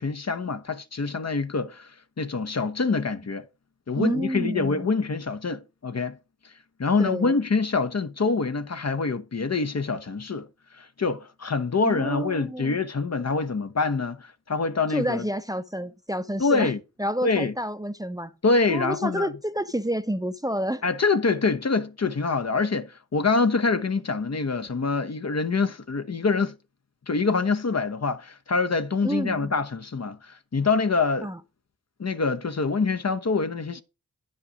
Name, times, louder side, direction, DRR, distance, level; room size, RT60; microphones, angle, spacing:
voice 1, 0.0-1.9 2.2-3.4 3.9-6.2 6.8-10.5 10.7-15.2 16.4-16.8 17.2-17.5 18.4-19.3 20.8-26.5 27.1-31.3 32.0-33.8, left 4 dB, 45° left, 0.9 m, -25 dB
voice 2, 4.0-5.0 7.0-7.3 11.8-12.8 14.9-16.7 17.0-18.3 18.7-20.8 29.0-29.5 31.2-31.4, right 1 dB, 10° right, 0.7 m, -29 dB
9.7 x 5.5 x 5.0 m
cardioid pair, 40°, 37 cm